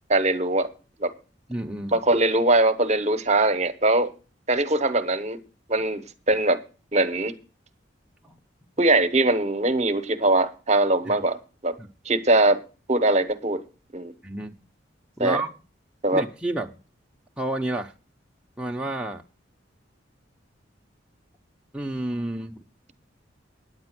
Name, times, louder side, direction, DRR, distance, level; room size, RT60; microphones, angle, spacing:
voice 1, 0.1-0.7 1.0-1.1 1.9-4.1 4.5-5.4 5.7-6.6 6.9-7.3 8.8-11.7 12.0-12.6 12.9-13.6 13.9-14.1 15.2-15.4 16.0-16.2, right 2 dB, 35° right, 13 dB, 1.0 m, -21 dB
voice 2, 1.5-2.0 8.2-8.4 11.1-11.2 11.8-11.9 14.2-14.5 15.2-15.5 16.1-16.7 17.4-17.9 18.6-19.2 21.7-22.6, right 1 dB, 5° right, 1 dB, 0.8 m, -30 dB
9.7 x 8.7 x 6.0 m, 0.34 s
head